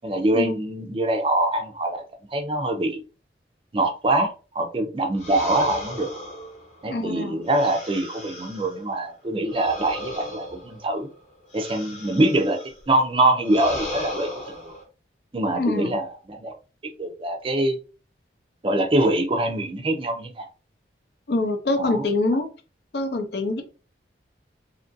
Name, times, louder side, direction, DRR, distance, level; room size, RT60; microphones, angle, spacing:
voice 1, 0.0-2.0 2.3-3.0 3.7-6.1 6.8-11.1 11.5-12.6 12.9-14.7 15.3-16.5 16.8-17.8 18.6-20.5 21.8-22.0, right 1 dB, 30° right, 4 dB, 0.4 m, -24 dB
sound 1, 5.2-8.8 9.5-12.8 13.4-14.8, left 1 dB, 40° left, 1.0 m, -36 dB
voice 2, 6.9-7.4 15.5-16.0 21.3-22.5 22.9-23.6, left 2 dB, 65° left, 6 dB, 0.5 m, -25 dB
2.7 x 2.5 x 2.6 m, 0.34 s
head